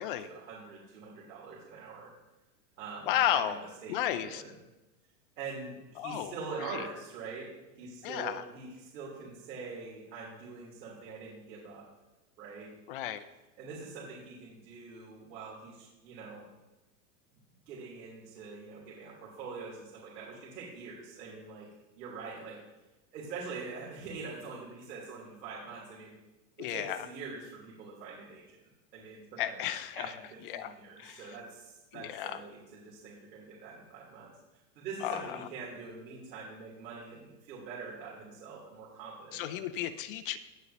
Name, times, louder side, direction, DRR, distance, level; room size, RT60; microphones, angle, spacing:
voice 1, 0.0-2.1 2.8-3.6 3.8-4.5 5.4-7.5 7.8-11.9 12.4-12.7 13.6-16.5 17.7-21.7 22.0-22.6 23.1-26.2 26.6-28.6 28.9-29.6 29.9-34.3 34.7-39.6, right 4 dB, 80° right, -6 dB, 3.4 m, -44 dB
voice 2, 3.1-3.6 3.9-4.4 6.0-6.9 8.0-8.5 12.9-13.2 26.6-27.1 29.4-30.2 30.4-30.7 31.0-31.4 31.9-32.4 35.0-35.5 39.3-40.4, left 11 dB, 35° left, 14 dB, 0.4 m, -33 dB
16.5 x 8.1 x 2.8 m, 1.0 s
supercardioid pair, 145°, 49 cm